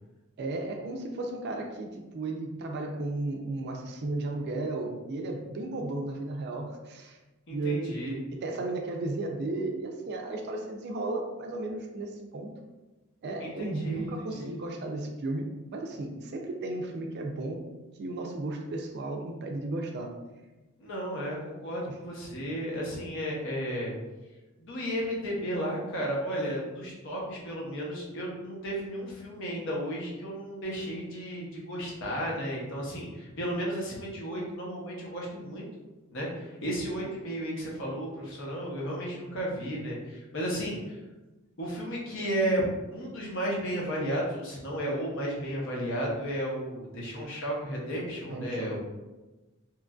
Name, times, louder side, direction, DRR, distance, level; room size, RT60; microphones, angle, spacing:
voice 1, 0.4-7.2 7.5-12.5 13.2-17.6 18.0-20.1 48.3-48.8, right 2 dB, 50° right, 2 dB, 0.4 m, -34 dB
voice 2, 7.5-8.2 13.4-14.6 20.8-23.9 24.6-35.6 36.1-41.0 41.6-48.8, equal, 60° left, -3 dB, 0.8 m, -33 dB
3.0 x 2.4 x 2.3 m, 1.1 s
head